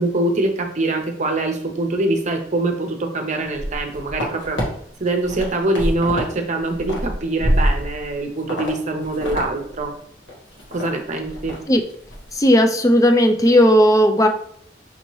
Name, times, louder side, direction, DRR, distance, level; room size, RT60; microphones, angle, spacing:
voice 1, 0.0-4.6 5.0-9.9 10.7-11.6, right 2 dB, 40° right, 4 dB, 0.7 m, -23 dB
sound 1, 3.5-4.6 5.1-6.3 6.6-8.1 8.5-8.7 9.0-9.5 9.8-9.9 10.3-10.9 11.2-11.6 11.9-12.2, equal, 85° left, 1.4 m, -24 dB
voice 2, 12.4-14.3, equal, 20° left, 6 dB, 0.4 m, -14 dB
5.3 x 2.8 x 3.0 m, 0.66 s
head